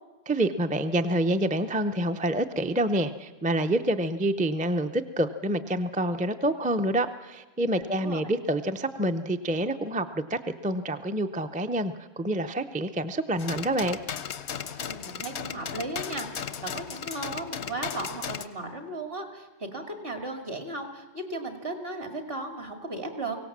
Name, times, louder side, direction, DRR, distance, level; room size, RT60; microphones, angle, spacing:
voice 1, 0.3-14.0, right 1 dB, 10° right, 8 dB, 0.5 m, -27 dB
voice 2, 7.8-8.2 14.8-23.4, right 2 dB, 60° right, 5 dB, 2.5 m, -36 dB
sound 1, 13.4-18.4, left 8 dB, 85° left, 1.1 m, -36 dB
23.5 x 17.0 x 7.3 m, 1.2 s
omnidirectional pair, 1.1 m